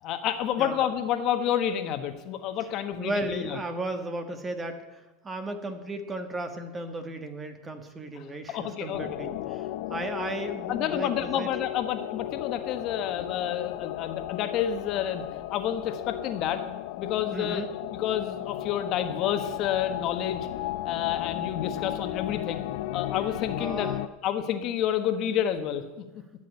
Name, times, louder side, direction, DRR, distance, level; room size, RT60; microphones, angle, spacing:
voice 1, 0.0-3.6 8.2-9.0 10.7-16.6 17.0-17.6 17.9-20.5 20.8-22.7 22.9-23.9 24.2-26.0, left 10 dB, 50° left, 7 dB, 1.3 m, -29 dB
voice 2, 3.0-11.5 17.3-17.7 23.6-24.0, right 2 dB, 20° right, 7 dB, 1.6 m, -35 dB
sound 1, 8.9-24.1, left 15 dB, 70° left, 0.5 m, -35 dB
14.0 x 6.4 x 9.5 m, 1.1 s
supercardioid pair, 120°, 0 cm